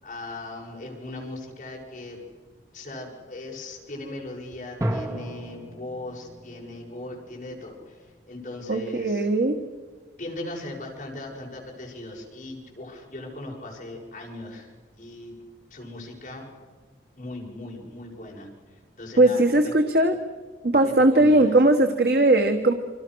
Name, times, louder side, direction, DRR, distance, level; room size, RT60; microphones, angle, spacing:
voice 1, 0.0-2.2 2.7-9.3 10.2-14.7 15.0-15.4 15.7-16.5 17.2-19.7 20.8-21.6, left 2 dB, 45° left, -1 dB, 6.8 m, -39 dB
sound 1, 4.8-8.3, right 1 dB, 20° right, 2.1 m, -34 dB
voice 2, 8.7-9.6 19.2-20.2 20.6-22.7, right 2 dB, 60° right, 6 dB, 1.4 m, -19 dB
29.5 x 26.0 x 6.4 m, 1.4 s
head